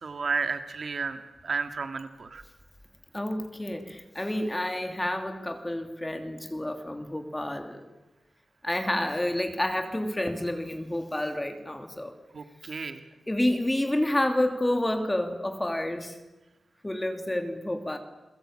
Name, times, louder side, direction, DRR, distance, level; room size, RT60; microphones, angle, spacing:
voice 1, 0.0-2.4 12.3-13.0, right 4 dB, 50° right, 8 dB, 2.0 m, -32 dB
voice 2, 3.1-7.9 8.6-12.1 13.3-16.2 16.8-18.0, left 1 dB, 10° left, 6 dB, 2.9 m, -29 dB
29.5 x 22.0 x 8.9 m, 1.0 s
wide cardioid pair, 130°, 0 cm